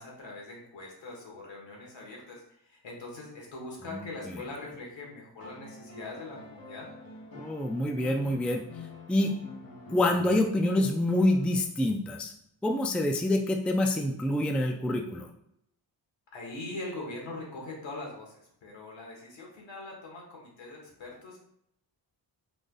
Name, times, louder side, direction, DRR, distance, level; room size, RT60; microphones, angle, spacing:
voice 1, 0.0-6.9 16.3-21.4, left 2 dB, 75° left, -1 dB, 1.7 m, -42 dB
voice 2, 3.9-4.3 7.4-8.6 9.1-9.3 9.9-12.3 12.6-15.3, left 1 dB, 5° left, 3 dB, 0.4 m, -26 dB
sound 1, 5.4-11.8 13.3-13.4, left 3 dB, 50° left, 1.1 m, -47 dB
3.9 x 2.9 x 3.8 m, 0.74 s
cardioid pair, 90°, 45 cm